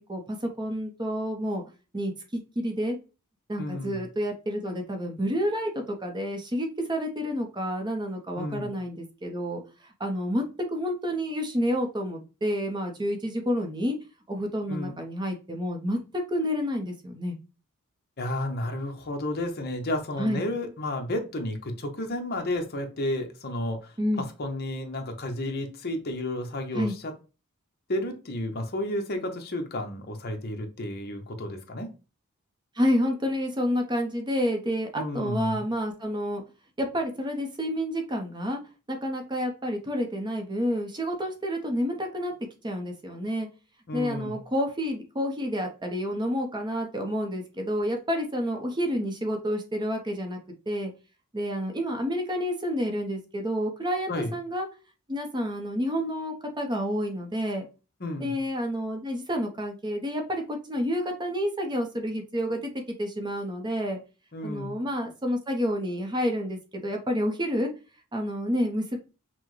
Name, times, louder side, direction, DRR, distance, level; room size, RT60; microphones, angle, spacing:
voice 1, 0.1-1.6 1.9-3.0 3.5-9.6 10.0-10.4 10.7-14.0 14.3-17.4 20.2-20.4 24.0-24.2 26.7-26.9 32.8-36.4 36.8-38.6 38.9-42.3 42.6-43.5 43.9-50.4 50.7-50.9 51.3-54.7 55.1-57.7 58.2-62.7 63.0-64.0 64.4-67.7 68.1-69.0, equal, 20° right, 3 dB, 0.7 m, -29 dB
voice 2, 3.6-4.0 8.3-8.7 14.7-15.0 18.2-27.1 27.9-31.9 34.9-35.6 43.9-44.4 54.1-54.3 58.0-58.3 64.3-64.8, left 1 dB, 45° left, 4 dB, 0.8 m, -32 dB
5.8 x 2.1 x 3.1 m, 0.32 s
head